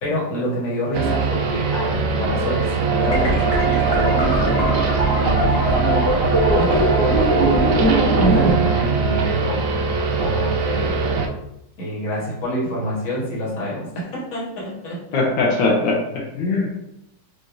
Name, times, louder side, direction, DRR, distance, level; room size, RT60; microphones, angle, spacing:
voice 1, 0.0-3.4 3.7-4.8 5.1-6.1 6.5-7.5 8.1-9.6 10.2-10.9 11.8-13.9 14.3-15.0, equal, 50° left, -6 dB, 1.7 m, -26 dB
sound 1, 0.9-11.3, right 5 dB, 80° right, 0.7 m, -21 dB
sound 2, 3.1-8.5, equal, 15° left, 1.1 m, -21 dB
voice 2, 15.1-16.8, left 3 dB, 85° left, -2 dB, 1.5 m, -21 dB
5.8 x 2.5 x 2.5 m, 0.84 s
omnidirectional pair, 2.0 m